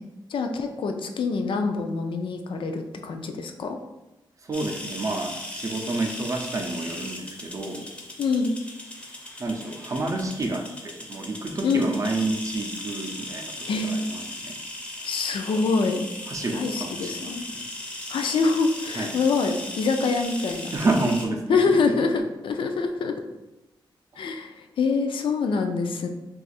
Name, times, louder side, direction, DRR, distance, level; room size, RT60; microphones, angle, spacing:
voice 1, 0.3-3.8 8.2-8.6 11.6-11.9 13.7-13.9 15.0-16.0 16.5-17.4 18.1-20.7 21.5-23.1 24.2-26.1, left 4 dB, 75° left, 5 dB, 0.4 m, -25 dB
voice 2, 4.4-7.9 9.4-14.6 16.3-17.7 19.0-19.2 20.7-22.0, right 2 dB, 40° right, 3 dB, 0.4 m, -29 dB
sound 1, 4.5-21.3, left 1 dB, 15° left, 0.5 m, -37 dB
2.5 x 2.4 x 4.1 m, 1.0 s
wide cardioid pair, 125°, 9 cm